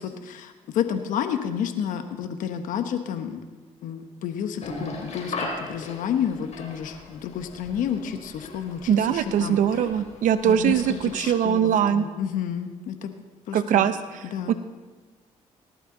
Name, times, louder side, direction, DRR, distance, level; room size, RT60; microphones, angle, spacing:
voice 1, 0.0-3.4 3.8-9.9 10.4-13.1 13.5-13.9 14.2-14.5, left 8 dB, 80° left, 7 dB, 1.1 m, -30 dB
sound 1, 4.6-11.4, left 2 dB, 55° left, 3.6 m, -38 dB
voice 2, 8.9-12.0 13.5-14.5, right 9 dB, 75° right, 11 dB, 0.7 m, -22 dB
18.5 x 11.5 x 3.9 m, 1.3 s
supercardioid pair, 65°, 14 cm